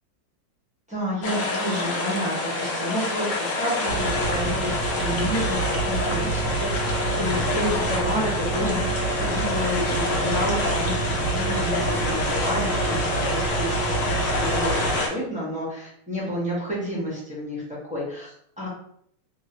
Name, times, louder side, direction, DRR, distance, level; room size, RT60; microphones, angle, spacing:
voice 1, 0.9-18.7, equal, 5° right, -7 dB, 0.9 m, -30 dB
sound 1, 1.2-15.1, left 3 dB, 60° left, 0.8 m, -27 dB
sound 2, 3.9-15.0, right 5 dB, 75° right, 1.2 m, -28 dB
2.9 x 2.9 x 2.8 m, 0.68 s
omnidirectional pair, 2.0 m